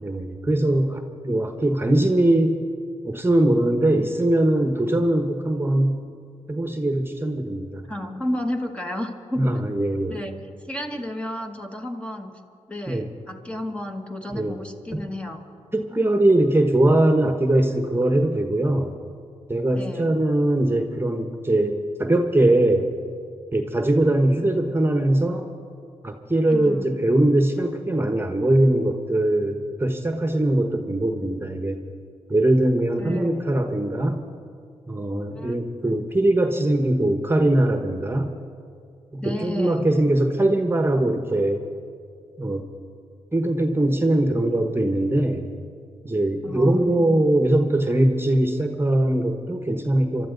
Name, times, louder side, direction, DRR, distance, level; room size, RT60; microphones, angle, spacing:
voice 1, 0.0-2.6 3.0-6.0 6.5-7.8 9.4-10.2 12.9-13.1 14.3-14.6 14.9-15.0 15.7-18.9 19.5-22.9 23.5-25.4 26.0-31.8 32.3-34.2 34.9-38.3 39.1-41.7 42.4-42.6 43.3-45.5 46.0-50.3, right 1 dB, 20° right, 5 dB, 1.2 m, -21 dB
voice 2, 7.9-9.6 10.1-12.4 12.7-15.4 19.7-20.2 26.5-26.9 33.0-33.4 35.3-35.5 35.9-36.0 39.2-40.0 46.4-47.3, left 1 dB, 10° left, 3 dB, 1.4 m, -32 dB
26.0 x 12.5 x 4.0 m, 2.3 s
cardioid pair, 65°, 12 cm